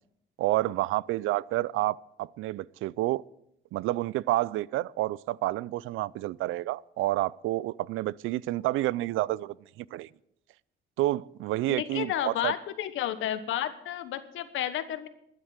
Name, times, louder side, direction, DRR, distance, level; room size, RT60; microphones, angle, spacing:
voice 1, 0.4-3.2 3.7-10.1 11.0-12.5, right 16 dB, 85° right, 0.4 m, -29 dB
voice 2, 11.7-15.1, left 11 dB, 85° left, 1.2 m, -31 dB
12.5 x 9.5 x 8.1 m
cardioid pair, 90°, 20 cm